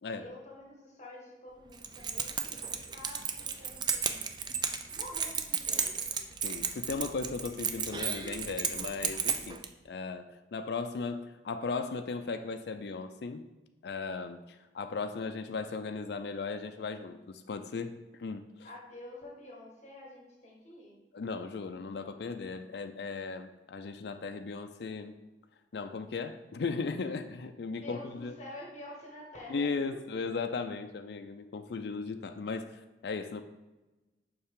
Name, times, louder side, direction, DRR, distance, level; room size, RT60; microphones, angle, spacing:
voice 1, 0.1-4.2 4.9-6.1 18.6-21.0 27.6-30.2, left 1 dB, 40° left, -2 dB, 1.5 m, -48 dB
Keys jangling, 1.7-9.7, right 7 dB, 25° right, 0.4 m, -34 dB
voice 2, 6.4-13.4 13.8-18.5 21.1-25.1 25.7-28.3 29.5-33.4, left 4 dB, 65° left, 7 dB, 0.4 m, -37 dB
6.9 x 5.7 x 3.7 m, 1.1 s
head